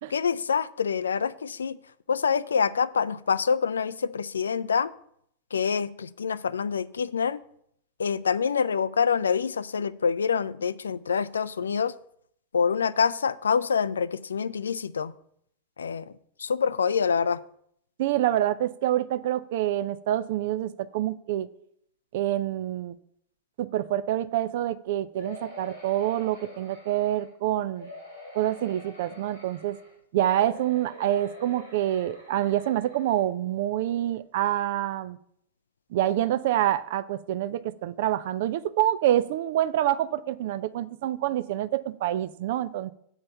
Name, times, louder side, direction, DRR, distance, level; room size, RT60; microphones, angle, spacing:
voice 1, 0.1-1.8 2.1-4.9 5.5-7.4 8.0-11.9 12.5-15.1 15.8-16.1 16.4-17.4, left 6 dB, 70° left, 18 dB, 0.3 m, -26 dB
voice 2, 18.0-21.5 22.1-23.0 23.6-27.9 28.3-29.8 30.1-35.2 35.9-42.9, right 12 dB, 55° right, 16 dB, 0.4 m, -27 dB
sound 1, 25.1-27.3 27.8-29.9 30.3-33.2 33.8-33.9 34.1-34.2, left 1 dB, 85° right, 2.8 m, -46 dB
7.1 x 5.4 x 6.8 m, 0.69 s
figure-of-eight pair, 90°, 0 cm